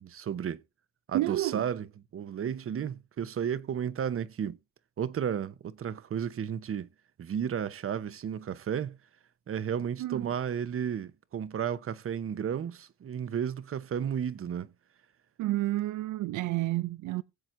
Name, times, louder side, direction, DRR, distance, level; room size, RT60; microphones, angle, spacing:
voice 1, 0.0-0.6 1.1-1.9 2.1-4.6 5.0-6.9 7.2-9.0 9.5-14.7, right 8 dB, 45° right, 0.9 m, -33 dB
voice 2, 1.1-1.7 10.0-10.3 15.4-17.2, right 16 dB, 80° right, 0.6 m, -30 dB
20.5 x 7.6 x 2.7 m
cardioid pair, 90°, 30 cm